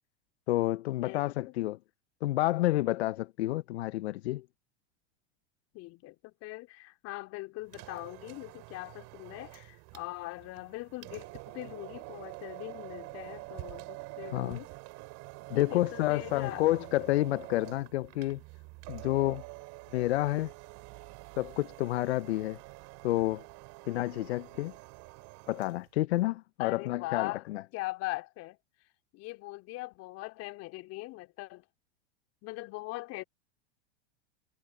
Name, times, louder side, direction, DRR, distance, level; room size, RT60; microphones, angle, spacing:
voice 1, 0.5-1.8 2.2-4.4 14.3-14.6 15.5-18.4 18.9-19.4 19.9-20.5 21.4-22.6 23.0-23.4 23.9-24.7 25.5-27.6, left 16 dB, 70° left, 0.8 m, -29 dB
voice 2, 1.0-1.5 5.7-14.7 15.5-16.7 26.6-27.4 27.7-28.6 29.1-31.6 32.4-33.2, left 20 dB, 50° left, 3.4 m, -41 dB
sound 1, 7.6-25.9, right 26 dB, 55° right, 4.2 m, -47 dB
hypercardioid pair, 100°, 33 cm